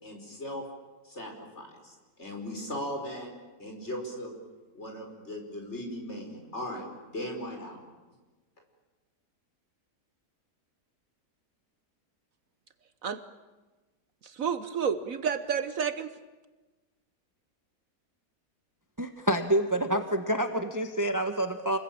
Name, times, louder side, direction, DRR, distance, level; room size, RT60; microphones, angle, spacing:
voice 1, 0.0-0.7 1.0-3.3 3.6-4.3 4.7-7.8, equal, 45° left, 2 dB, 5.3 m, -38 dB
voice 2, 14.2-16.1, right 7 dB, 60° right, 11 dB, 1.4 m, -30 dB
voice 3, 19.0-21.8, right 1 dB, 15° right, 7 dB, 1.2 m, -27 dB
29.0 x 21.5 x 8.8 m, 1.2 s
omnidirectional pair, 1.7 m